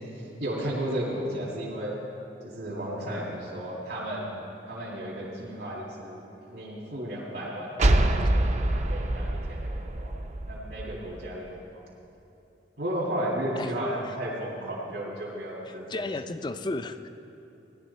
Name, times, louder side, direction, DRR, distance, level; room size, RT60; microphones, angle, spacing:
voice 1, 0.0-2.0 2.4-4.3 4.6-6.2 6.5-10.1 10.5-11.5 11.7-11.8 12.8-16.1, right 1 dB, 80° right, -6 dB, 2.4 m, -34 dB
sound 1, 7.8-11.3, right 1 dB, 40° right, 0.5 m, -25 dB
voice 2, 15.7-17.1, left 2 dB, 25° left, 10 dB, 0.4 m, -34 dB
16.5 x 10.5 x 4.2 m, 2.8 s
head